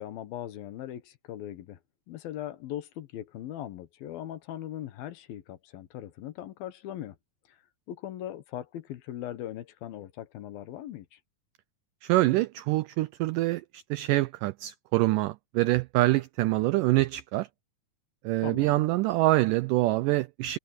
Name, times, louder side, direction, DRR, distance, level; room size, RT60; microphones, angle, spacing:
voice 1, 0.0-1.8 2.1-7.2 7.9-11.2 18.4-18.8, left 12 dB, 75° left, 3.0 m, -39 dB
voice 2, 12.0-17.5 18.2-20.6, right 18 dB, 90° right, 1.8 m, -25 dB
omnidirectional pair, 4.4 m